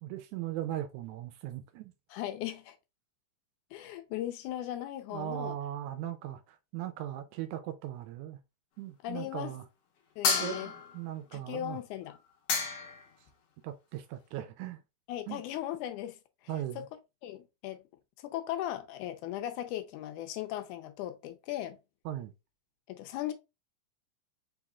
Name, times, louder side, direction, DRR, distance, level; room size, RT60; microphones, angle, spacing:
voice 1, 0.0-1.9 5.1-8.4 8.8-9.7 10.4-11.8 13.6-14.8 15.3-15.4 16.5-16.9 22.1-22.3, right 12 dB, 80° right, 1.8 m, -38 dB
voice 2, 2.1-2.8 3.7-5.6 9.0-9.5 10.2-10.7 11.3-12.2 15.1-16.2 16.8-16.9 17.2-17.8 18.2-21.8 22.9-23.3, left 12 dB, 80° left, 2.0 m, -37 dB
sound 1, 10.2-11.1 12.1-12.2 12.5-13.1, left 5 dB, 60° left, 1.8 m, -30 dB
4.7 x 4.0 x 2.3 m
omnidirectional pair, 3.8 m